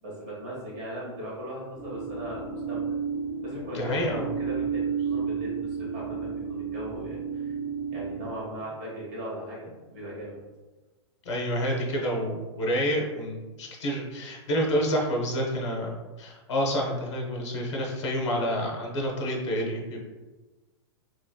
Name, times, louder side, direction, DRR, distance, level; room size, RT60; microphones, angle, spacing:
voice 1, 0.0-2.8 3.4-7.5 7.9-10.4, equal, 40° right, -6 dB, 1.4 m, -38 dB
sound 1, 1.7-8.3, right 6 dB, ahead, 0.4 m, -32 dB
voice 2, 3.7-4.3 11.2-15.9 16.2-20.0, equal, 85° left, 0 dB, 0.9 m, -28 dB
3.2 x 3.0 x 2.2 m, 1.2 s
supercardioid pair, 170°, 15 cm